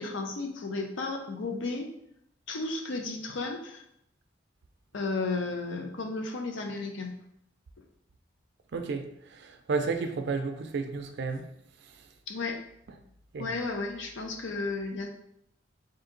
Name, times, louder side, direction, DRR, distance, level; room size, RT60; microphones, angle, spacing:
voice 1, 0.0-1.9 2.5-3.8 4.9-7.1 12.3-12.6 13.4-15.1, left 3 dB, 70° left, 4 dB, 0.6 m, -33 dB
voice 2, 8.7-9.0 9.4-11.4 13.3-13.5, right 4 dB, 60° right, 6 dB, 0.4 m, -31 dB
3.7 x 2.7 x 3.8 m, 0.75 s
head